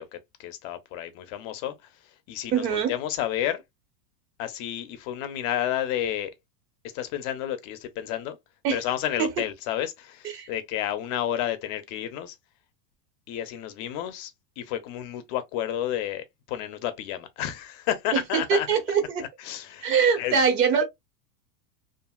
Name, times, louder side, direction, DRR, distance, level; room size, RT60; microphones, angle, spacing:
voice 1, 0.0-1.7 2.3-3.6 4.4-6.3 6.9-8.4 8.7-12.3 13.3-18.7 19.2-20.4, left 11 dB, 40° left, 0.5 m, -31 dB
voice 2, 2.5-2.9 8.6-8.8 9.2-9.3 10.3-10.5 18.1-19.2 19.8-20.8, right 6 dB, 80° right, 1.3 m, -23 dB
2.7 x 2.5 x 2.3 m
supercardioid pair, 125°, 48 cm